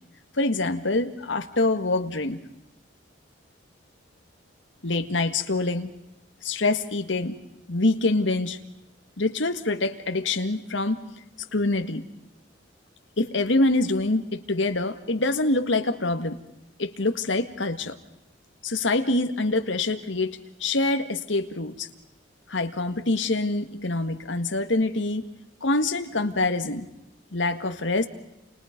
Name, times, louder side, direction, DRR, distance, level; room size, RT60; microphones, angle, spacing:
voice 1, 0.3-2.4 4.8-5.9 6.4-7.4 7.7-8.6 9.2-11.1 11.5-12.0 13.2-16.4 16.8-18.0 18.6-21.9 22.5-25.3 25.6-26.9 27.3-28.1, left 2 dB, 80° left, 8 dB, 1.9 m, -25 dB
30.0 x 28.5 x 5.3 m, 0.89 s
head